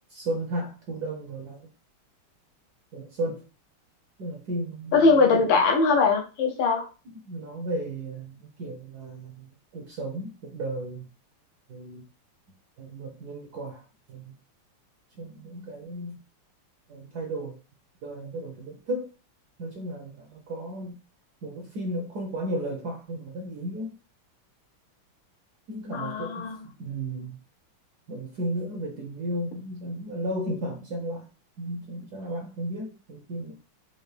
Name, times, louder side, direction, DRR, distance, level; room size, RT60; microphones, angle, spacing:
voice 1, 0.1-1.7 2.9-3.5 4.2-5.4 7.3-9.5 9.7-11.1 11.7-12.1 12.8-13.8 14.1-14.3 15.2-16.2 16.9-17.6 18.0-19.1 19.6-20.9 21.4-24.0 25.7-26.4 26.8-27.4 28.1-31.3 31.6-33.5, right 1 dB, 65° right, 1 dB, 1.0 m, -34 dB
voice 2, 4.9-6.9 25.9-26.6, left 4 dB, 70° left, 2 dB, 1.3 m, -21 dB
4.5 x 2.5 x 3.2 m, 0.32 s
omnidirectional pair, 2.4 m